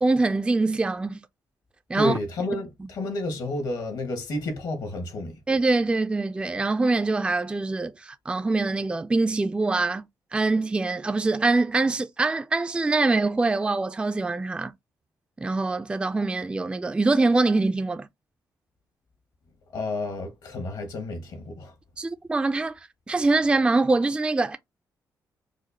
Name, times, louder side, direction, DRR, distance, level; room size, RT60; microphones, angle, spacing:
voice 1, 0.0-1.2 1.9-2.2 2.8-2.9 5.5-10.0 10.3-14.7 15.4-18.1 22.0-22.7 23.1-24.6, right 3 dB, 15° right, 0.3 m, -24 dB
voice 2, 2.0-5.3 19.7-21.7, left 1 dB, 70° left, 1.4 m, -30 dB
5.0 x 2.1 x 2.7 m
cardioid pair, 75°, 7 cm